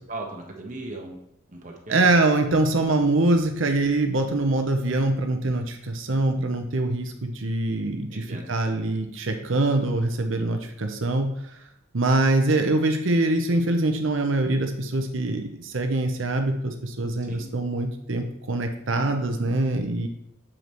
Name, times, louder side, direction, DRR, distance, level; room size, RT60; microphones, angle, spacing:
voice 1, 0.1-1.2 1.5-2.1 8.1-8.5 17.2-17.5, right 2 dB, 40° right, 1 dB, 1.2 m, -37 dB
voice 2, 1.9-11.5 11.9-20.1, right 2 dB, 70° right, 5 dB, 0.8 m, -24 dB
7.2 x 5.1 x 3.1 m, 0.78 s
head